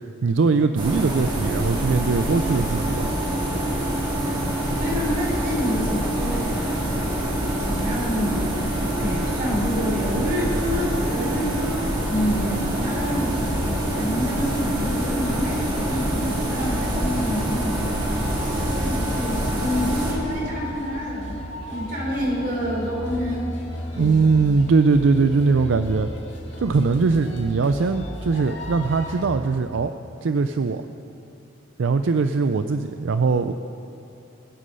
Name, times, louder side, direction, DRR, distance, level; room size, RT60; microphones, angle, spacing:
voice 1, 0.2-3.1 23.9-26.1 26.6-29.9 30.2-30.8 31.8-33.5, right 4 dB, 75° right, 9 dB, 0.4 m, -21 dB
sound 1, 0.8-20.1, right 1 dB, 25° right, 2.2 m, -25 dB
voice 2, 4.8-6.7 7.6-8.7 9.0-18.2 18.7-21.4 21.7-23.5 23.9-24.5, equal, 45° right, -4 dB, 4.2 m, -28 dB
sound 2, 11.9-29.3, left 1 dB, 65° left, 1.9 m, -35 dB
21.5 x 8.3 x 5.5 m, 2.7 s
head